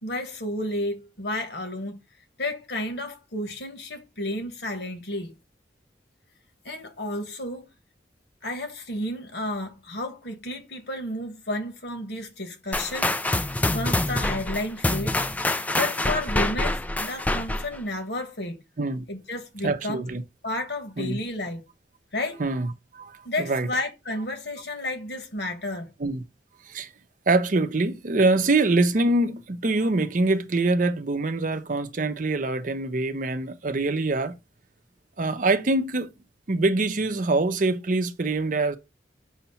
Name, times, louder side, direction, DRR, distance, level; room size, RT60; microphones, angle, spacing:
voice 1, 0.0-2.0 2.4-5.4 6.6-7.7 8.4-13.1 13.7-15.2 15.8-18.6 19.1-20.0 20.4-21.6 22.1-22.4 23.2-25.9, left 1 dB, 70° left, 1.7 m, -32 dB
sound 1, 12.7-17.8, left 1 dB, 10° left, 0.3 m, -26 dB
voice 2, 19.6-20.2 21.0-21.2 22.4-23.7 26.0-26.2 26.7-26.9 27.3-34.4 35.2-36.1 36.5-38.8, right 2 dB, 45° right, 0.6 m, -24 dB
6.3 x 2.9 x 5.6 m
head